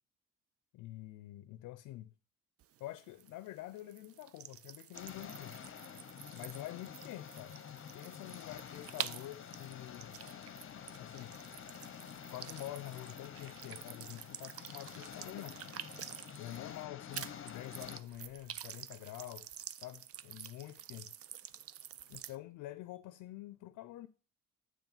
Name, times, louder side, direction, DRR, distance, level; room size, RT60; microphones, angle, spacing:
voice 1, 0.7-2.1 2.8-5.6 6.3-10.2 11.0-11.4 12.3-15.6 16.4-21.2 22.1-24.1, left 15 dB, 85° left, 0.5 m, -47 dB
sound 1, 2.6-16.8 17.1-22.4, right 10 dB, 50° right, 0.4 m, -49 dB
sound 2, 4.9-18.0, left 8 dB, 45° left, 0.7 m, -49 dB
9.0 x 3.1 x 5.4 m
cardioid pair, 90°, 30 cm